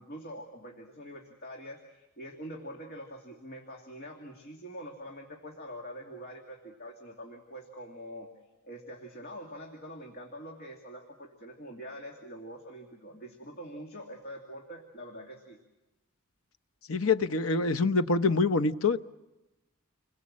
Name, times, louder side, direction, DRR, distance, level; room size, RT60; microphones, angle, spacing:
voice 1, 0.0-8.3 8.6-15.6, equal, 45° left, 2.6 m, -44 dB
voice 2, 16.9-19.0, left 3 dB, 70° left, 0.9 m, -25 dB
29.0 x 21.5 x 7.5 m
head